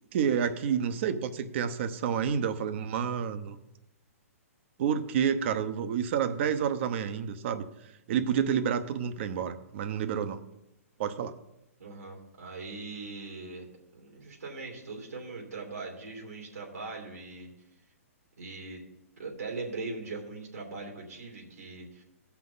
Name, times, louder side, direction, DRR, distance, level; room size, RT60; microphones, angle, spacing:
voice 1, 0.1-3.6 4.8-7.7 8.1-10.4 11.0-11.3, right 8 dB, 50° right, 10 dB, 0.9 m, -29 dB
voice 2, 11.8-13.6 13.9-17.5 18.4-18.8 19.2-22.0, right 3 dB, 85° right, -1 dB, 3.0 m, -40 dB
17.5 x 5.8 x 4.0 m, 0.91 s
hypercardioid pair, 135°, 8 cm